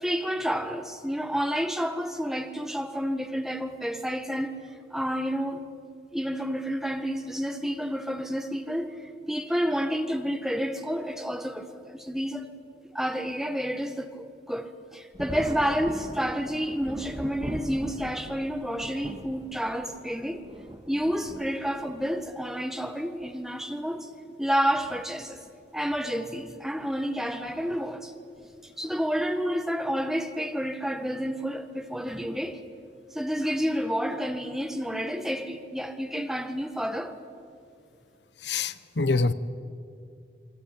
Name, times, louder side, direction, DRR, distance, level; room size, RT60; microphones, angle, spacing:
voice 1, 0.0-4.5 4.9-5.6 6.1-12.5 12.9-20.4 20.9-24.1 24.4-25.4 25.7-28.1 28.8-32.6 33.1-37.1, equal, ahead, 1.5 m, -30 dB
Thunder, 15.1-22.2 23.2-23.3 24.8-25.0 25.4-25.5 27.4-27.7 28.4-28.7, equal, 25° right, 1.8 m, -40 dB
voice 2, 38.4-39.3, left 3 dB, 90° left, 1.0 m, -25 dB
28.5 x 23.0 x 9.1 m
head